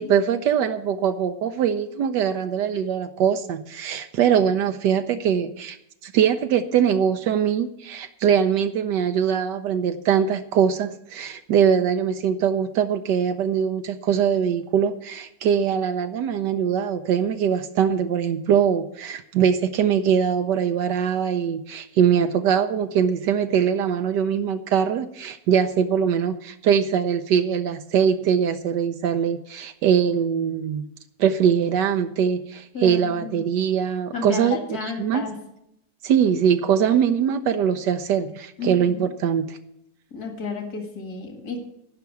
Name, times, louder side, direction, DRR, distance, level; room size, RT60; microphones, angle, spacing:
voice 1, 0.0-5.8 6.0-30.8 31.2-35.2 36.0-39.6, right 8 dB, 80° right, 7 dB, 1.3 m, -22 dB
voice 2, 32.7-33.4 34.1-35.4 38.6-39.1 40.1-41.6, left 4 dB, 60° left, 3 dB, 2.4 m, -32 dB
14.0 x 5.8 x 8.4 m, 0.78 s
omnidirectional pair, 1.8 m